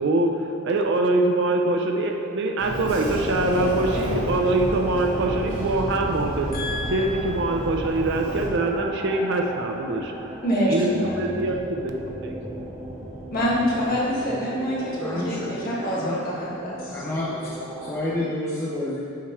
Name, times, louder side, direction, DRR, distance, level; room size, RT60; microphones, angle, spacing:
voice 1, 0.0-10.1 10.7-12.4, right 2 dB, 55° right, 3 dB, 0.5 m, -24 dB
Sliding door, 2.6-8.5, right 1 dB, 80° right, 1.4 m, -31 dB
sound 1, 2.8-18.2, right 1 dB, 15° right, 1.1 m, -37 dB
voice 2, 6.5-7.1 10.4-11.5 13.3-17.0, equal, 45° left, -6 dB, 1.4 m, -26 dB
voice 3, 15.0-16.2 16.9-17.5 17.8-19.0, left 1 dB, 10° left, -8 dB, 0.5 m, -29 dB
7.3 x 3.1 x 4.4 m, 2.4 s
head